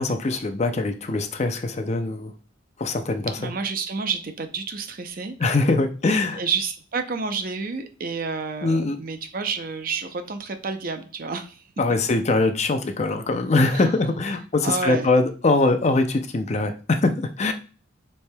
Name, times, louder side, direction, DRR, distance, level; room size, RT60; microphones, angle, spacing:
voice 1, 0.0-2.3 2.8-3.5 5.4-6.4 8.6-9.0 11.8-17.5, left 3 dB, 35° left, 7 dB, 0.5 m, -22 dB
voice 2, 3.4-5.4 6.4-11.6 13.7-14.0 14.6-15.1, right 5 dB, 50° right, 7 dB, 0.6 m, -29 dB
7.2 x 3.4 x 2.2 m, 0.36 s
head